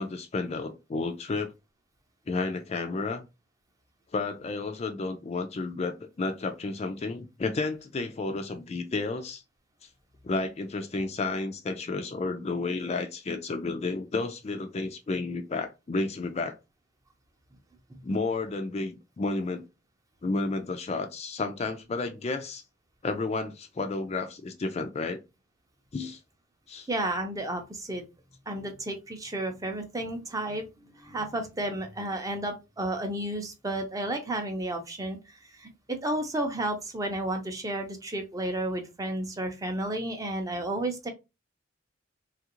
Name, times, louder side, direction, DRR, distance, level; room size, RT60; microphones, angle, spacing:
voice 1, 0.0-1.5 2.3-3.3 4.1-9.4 10.2-16.5 18.0-19.6 20.2-22.6 23.0-25.2 25.9-26.2 26.7-26.9, left 3 dB, 35° left, 0.3 m, -31 dB
voice 2, 26.9-28.0 28.5-41.1, right 1 dB, 15° right, 0.5 m, -32 dB
3.3 x 2.4 x 2.9 m
head